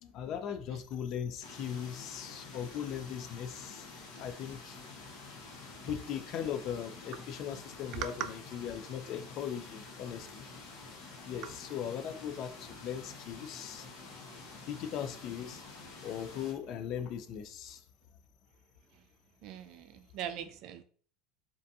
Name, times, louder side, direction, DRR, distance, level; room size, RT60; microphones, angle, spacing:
voice 1, 0.0-4.8 5.8-10.5 11.2-13.9 14.7-15.6 16.0-17.8, left 9 dB, 40° left, 0.3 m, -39 dB
sound 1, 1.4-16.5, left 3 dB, 65° left, 0.9 m, -49 dB
voice 2, 19.4-20.8, right 9 dB, 45° right, 0.3 m, -40 dB
2.5 x 2.2 x 2.6 m
cardioid pair, 160°, 0 cm